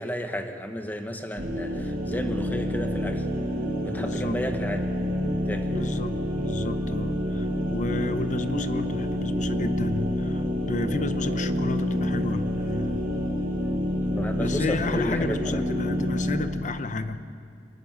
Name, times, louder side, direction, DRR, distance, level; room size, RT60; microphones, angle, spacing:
voice 1, 0.0-3.3 3.8-4.8 5.4-5.7 14.0-15.6, equal, 10° left, 6 dB, 1.3 m, -32 dB
sound 1, 1.4-16.4, left 1 dB, 55° right, 2.8 m, -28 dB
voice 2, 3.9-4.4 5.7-13.1 14.4-17.2, left 2 dB, 45° left, 10 dB, 0.8 m, -32 dB
23.0 x 13.5 x 9.4 m, 2.2 s
head